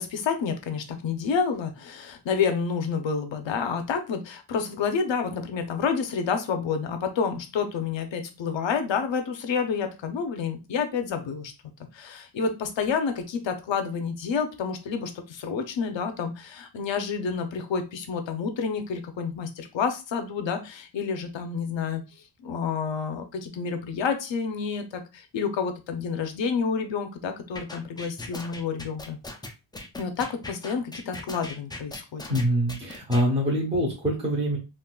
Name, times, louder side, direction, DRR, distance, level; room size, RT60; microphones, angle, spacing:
voice 1, 0.0-11.5 11.9-22.0 22.4-29.2 30.0-32.2, left 6 dB, 85° left, 7 dB, 0.7 m, -29 dB
sound 1, 27.5-33.2, left 2 dB, 10° left, 0.3 m, -39 dB
voice 2, 32.3-34.6, equal, 15° right, -4 dB, 0.8 m, -24 dB
3.7 x 2.4 x 2.3 m, 0.28 s
wide cardioid pair, 135°, 43 cm